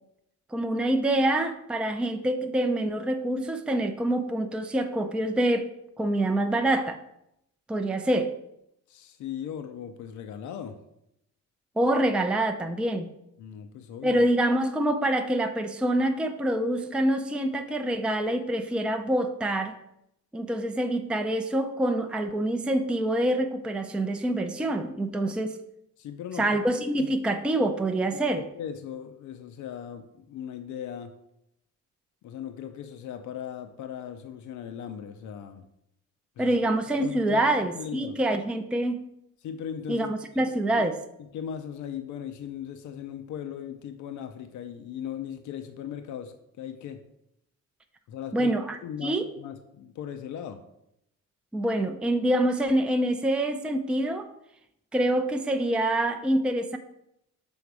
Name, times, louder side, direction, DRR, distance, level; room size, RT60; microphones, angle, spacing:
voice 1, 0.5-7.0 7.7-8.3 11.8-13.1 14.0-19.8 20.3-25.6 26.4-28.4 36.4-39.1 39.9-41.0 48.3-49.3 51.5-54.3 54.9-56.8, right 1 dB, 5° right, 6 dB, 0.4 m, -26 dB
voice 2, 8.9-10.8 13.4-14.2 26.0-26.5 27.0-27.1 28.4-31.1 32.2-35.6 36.4-36.6 37.0-38.2 39.4-40.9 41.3-47.0 48.1-48.5 48.8-50.6, left 9 dB, 75° left, 8 dB, 0.6 m, -38 dB
5.4 x 3.8 x 4.7 m, 0.80 s
cardioid pair, 90°, 30 cm